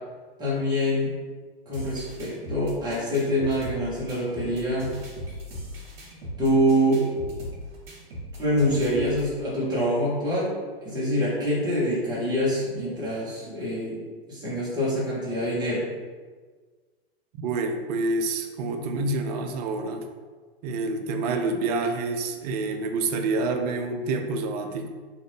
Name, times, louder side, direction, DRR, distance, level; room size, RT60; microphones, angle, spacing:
voice 1, 0.4-1.2 1.7-4.9 6.4-7.1 8.4-10.5 10.8-14.0 14.3-15.9, equal, 15° right, -8 dB, 1.1 m, -25 dB
sound 1, 1.7-9.3, equal, 70° right, 1.1 m, -39 dB
voice 2, 17.3-20.1 20.6-24.9, right 3 dB, 45° right, 6 dB, 0.4 m, -27 dB
2.6 x 2.4 x 3.3 m, 1.4 s
hypercardioid pair, 105°, 30 cm